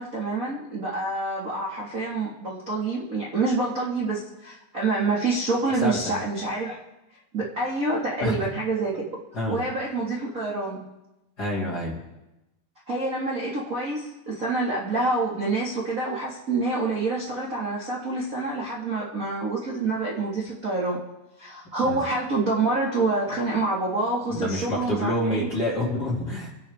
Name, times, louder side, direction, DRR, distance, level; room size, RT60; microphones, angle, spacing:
voice 1, 0.0-6.8 7.3-9.0 9.5-10.9 12.9-21.0 21.4-25.5, right 3 dB, 50° right, -5 dB, 0.9 m, -27 dB
voice 2, 5.8-6.2 8.2-8.5 9.3-9.6 11.4-12.0 21.8-22.0 24.3-26.5, left 1 dB, 30° left, -4 dB, 2.1 m, -27 dB
26.5 x 10.5 x 3.5 m, 0.97 s
omnidirectional pair, 5.0 m